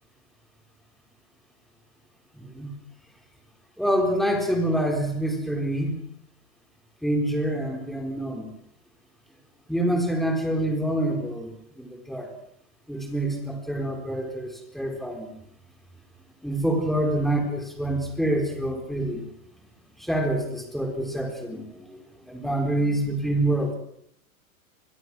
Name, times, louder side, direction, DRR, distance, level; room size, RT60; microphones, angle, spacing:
voice 1, 2.3-2.7 3.8-6.0 7.0-8.5 9.7-12.3 12.9-15.3 16.4-19.2 20.0-22.0 22.3-23.7, right 1 dB, ahead, 3 dB, 4.2 m, -26 dB
26.0 x 22.5 x 6.3 m, 0.73 s
supercardioid pair, 145°, 43 cm